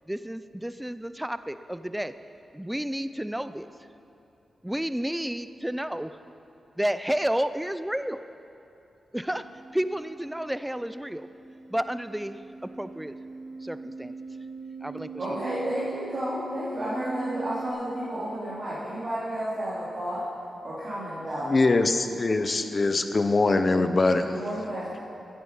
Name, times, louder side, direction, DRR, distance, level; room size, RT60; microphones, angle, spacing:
voice 1, 0.1-2.1 2.5-3.7 4.6-6.2 6.8-8.2 9.1-9.4 9.7-11.3 11.7-12.4 12.8-13.1 13.6-14.1 14.8-15.5, equal, 5° right, 12 dB, 0.4 m, -31 dB
sound 1, 9.2-17.7, right 3 dB, 85° right, 3.5 m, -41 dB
voice 2, 15.2-20.2 20.6-21.5 24.3-25.0, equal, 50° right, -11 dB, 3.5 m, -32 dB
voice 3, 21.4-24.3, left 3 dB, 35° left, 8 dB, 0.8 m, -23 dB
15.0 x 9.6 x 5.6 m, 2.8 s
cardioid pair, 85°, 0 cm